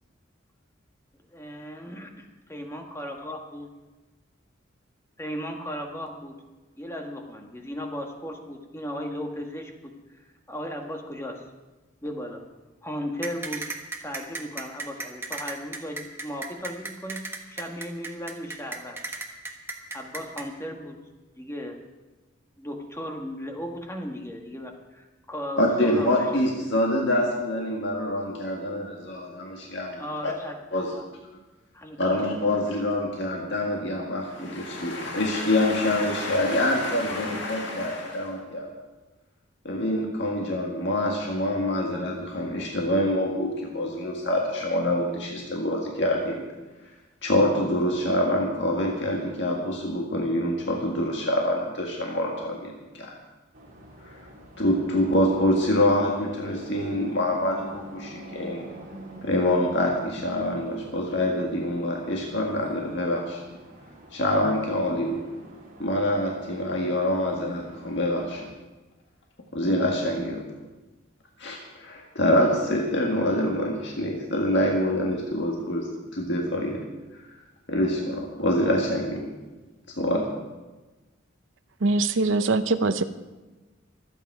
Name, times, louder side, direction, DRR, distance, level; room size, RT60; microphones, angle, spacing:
voice 1, 1.3-3.7 5.2-6.4 6.8-11.4 12.0-12.5 12.8-13.7 14.0-19.0 19.9-21.0 21.4-21.8 22.6-26.4 30.0-30.6 30.9-31.1 31.7-32.6 37.1-37.2, equal, 15° left, 2 dB, 1.6 m, -36 dB
sound 1, 13.2-20.4, right 3 dB, 10° right, 1.3 m, -34 dB
voice 2, 25.6-30.3 30.7-31.0 32.0-38.7 39.7-46.5 47.2-53.2 54.0-54.2 54.6-58.7 59.2-63.4 64.1-65.3 65.8-68.5 69.5-70.5 71.4-76.9 77.1-77.2 77.7-79.3 80.0-80.3, left 1 dB, 60° left, 0 dB, 1.8 m, -26 dB
sound 2, 53.5-68.5, right 1 dB, 45° right, 3.1 m, -46 dB
voice 3, 81.8-83.0, right 3 dB, 70° right, 10 dB, 0.7 m, -22 dB
25.0 x 9.0 x 4.7 m, 1.2 s
head